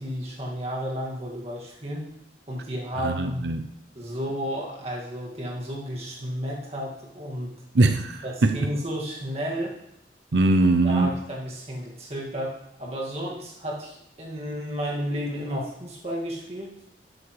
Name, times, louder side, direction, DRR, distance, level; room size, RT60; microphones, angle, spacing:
voice 1, 0.0-2.1 2.5-3.5 3.9-7.5 8.2-9.8 10.8-16.7, equal, 35° right, -3 dB, 2.1 m, -32 dB
voice 2, 3.0-3.7 7.7-8.5 10.3-11.1, right 2 dB, 75° right, 7 dB, 0.6 m, -21 dB
12.0 x 8.0 x 3.3 m, 0.80 s
head